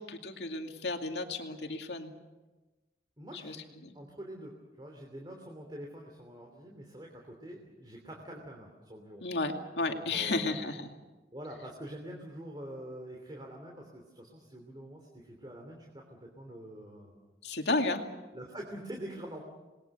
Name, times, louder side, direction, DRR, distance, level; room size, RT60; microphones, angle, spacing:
voice 1, 0.0-2.1 3.4-3.6 3.8-3.9 9.2-10.9 17.4-18.0, left 3 dB, 80° left, 4 dB, 2.4 m, -33 dB
voice 2, 3.2-9.2 9.8-10.6 11.3-17.1 18.3-19.4, right 1 dB, 25° right, 1 dB, 3.0 m, -45 dB
27.5 x 21.0 x 6.7 m, 1.2 s
head